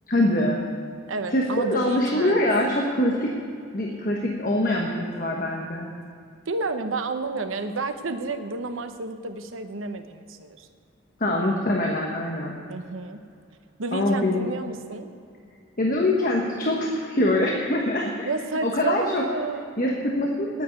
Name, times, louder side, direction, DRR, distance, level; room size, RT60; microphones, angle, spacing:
voice 1, 0.1-0.6 1.3-3.3 3.7-5.9 11.2-12.6 13.9-14.5 15.8-18.3 18.6-19.2 19.8-20.6, left 1 dB, 45° left, -1 dB, 1.2 m, -24 dB
voice 2, 1.1-2.4 6.5-10.7 12.7-13.2 13.8-15.1 18.3-19.8, right 3 dB, 85° right, 8 dB, 0.9 m, -30 dB
9.6 x 9.2 x 9.4 m, 2.4 s
head